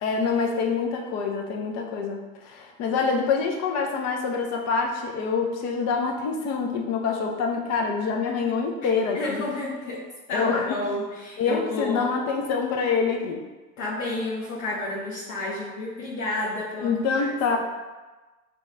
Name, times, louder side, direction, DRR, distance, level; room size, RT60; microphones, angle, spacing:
voice 1, 0.0-9.4 10.3-10.8 11.4-13.4 16.8-17.6, left 5 dB, 40° left, 2 dB, 0.6 m, -26 dB
voice 2, 9.1-12.1 13.8-17.6, left 2 dB, 55° left, -7 dB, 1.1 m, -31 dB
6.1 x 2.3 x 2.5 m, 1.2 s
hypercardioid pair, 90°, 43 cm